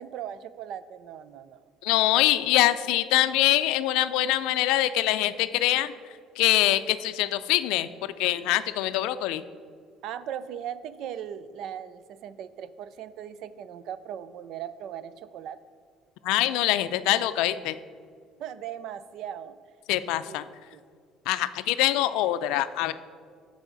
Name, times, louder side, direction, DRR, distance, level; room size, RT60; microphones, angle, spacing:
voice 1, 0.0-1.7 10.0-15.6 18.4-19.6 20.3-20.4 20.7-20.8, right 9 dB, 65° right, 15 dB, 0.4 m, -38 dB
voice 2, 1.8-5.9 6.4-9.4 16.2-17.7 19.9-20.4 21.3-22.9, left 14 dB, 85° left, 13 dB, 0.4 m, -24 dB
14.0 x 4.9 x 3.9 m, 2.1 s
cardioid pair, 110°, 0 cm